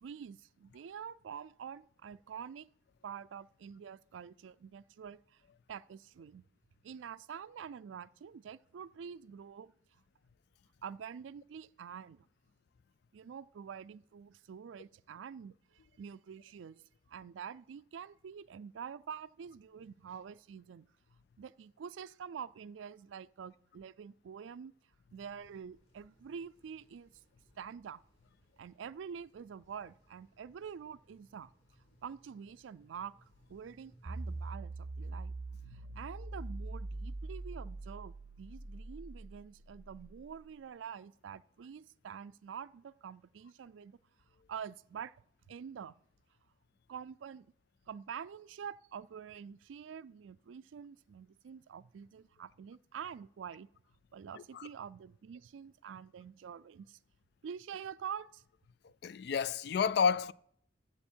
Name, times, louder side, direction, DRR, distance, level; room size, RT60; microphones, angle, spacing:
voice 1, 0.0-2.7 3.0-5.4 5.7-6.5 6.8-9.7 10.8-12.3 13.1-16.8 17.1-20.9 21.4-24.7 25.1-27.1 27.6-28.0 28.6-31.5 32.0-33.1 33.5-35.3 35.7-44.0 44.5-45.2 45.5-46.0 46.9-47.5 47.9-53.7 54.1-57.0 57.4-58.4, right 7 dB, 85° right, 0.4 m, -46 dB
sound 1, 25.2-34.6, right 1 dB, 30° left, 4.5 m, -68 dB
sound 2, 34.1-40.3, right 2 dB, 40° right, 0.6 m, -43 dB
voice 2, 54.3-54.7 59.0-60.3, left 6 dB, 60° left, 0.3 m, -30 dB
14.0 x 7.1 x 4.4 m
head